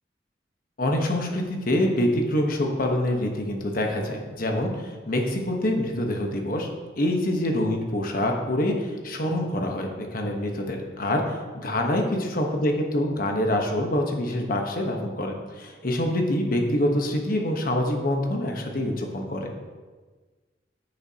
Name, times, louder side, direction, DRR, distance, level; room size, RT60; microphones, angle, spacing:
voice 1, 0.8-6.7 7.0-19.5, left 1 dB, 50° left, 2 dB, 1.1 m, -26 dB
10.5 x 6.6 x 2.9 m, 1.4 s
head